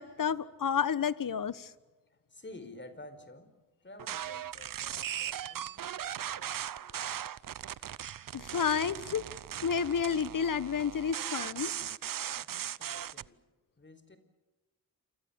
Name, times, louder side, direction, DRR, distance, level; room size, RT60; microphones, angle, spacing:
voice 1, 0.0-1.7 8.3-9.3 9.6-11.7, left 7 dB, 65° left, 17 dB, 1.3 m, -30 dB
voice 2, 2.1-3.5 3.8-7.1 12.4-13.4 13.8-14.2, left 2 dB, 30° left, 10 dB, 4.6 m, -52 dB
sound 1, 4.0-13.3, right 10 dB, 65° right, 0.7 m, -38 dB
28.5 x 24.0 x 7.1 m, 1.2 s
cardioid pair, 60°, 35 cm